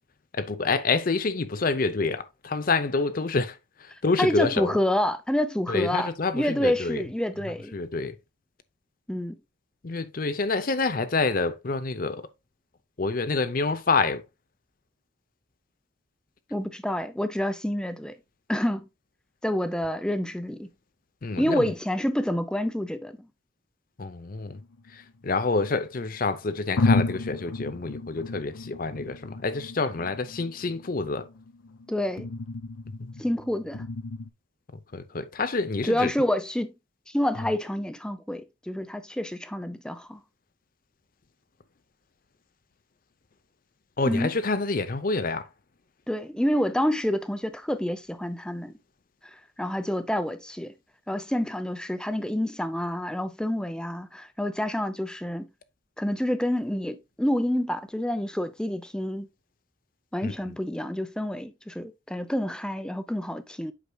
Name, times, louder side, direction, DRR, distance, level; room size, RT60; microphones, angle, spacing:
voice 1, 0.3-3.6 3.8-4.7 5.7-7.0 7.7-8.2 9.8-12.3 13.0-14.2 21.2-21.7 24.0-24.6 24.9-31.3 33.0-33.1 34.9-36.1 44.0-45.5 60.2-60.6, left 3 dB, 45° left, 0.7 m, -27 dB
voice 2, 4.2-7.8 9.1-9.4 16.5-18.1 18.5-18.8 19.4-20.7 21.4-23.2 31.9-32.3 33.2-33.8 35.8-36.7 37.1-40.2 44.0-44.3 46.1-48.7 49.6-50.7 51.1-55.5 56.0-59.3 60.1-63.7, left 1 dB, 5° left, 0.6 m, -28 dB
sound 1, 24.4-25.7 26.3-26.4 26.8-34.3, left 2 dB, 80° left, 0.7 m, -32 dB
8.2 x 6.0 x 2.3 m
head